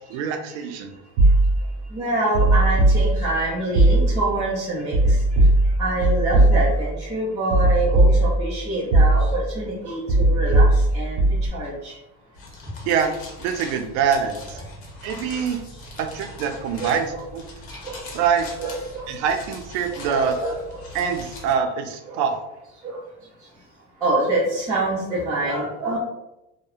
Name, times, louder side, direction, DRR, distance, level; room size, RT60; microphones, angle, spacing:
voice 1, 0.1-0.9 12.8-13.1 13.4-14.6 15.0-15.6 16.0-17.4 18.1-18.5 19.1-20.4 20.9-22.4, right 7 dB, 85° right, 6 dB, 0.5 m, -24 dB
sound 1, 1.2-1.8 2.3-3.4 3.7-4.4 4.9-7.0 7.5-8.6 8.9-9.5 10.1-11.5, right 1 dB, 50° right, 0.9 m, -18 dB
voice 2, 1.9-5.2 5.8-11.2 11.5-11.9 16.8-17.2 17.7-18.0 18.6-19.1 19.9-20.8 22.1-22.2 22.8-23.0 24.0-26.0, right 2 dB, 10° right, -10 dB, 0.4 m, -26 dB
sound 2, 12.3-21.5, left 2 dB, 85° left, 0.8 m, -41 dB
2.7 x 2.1 x 2.3 m, 0.93 s
cardioid pair, 160°, 33 cm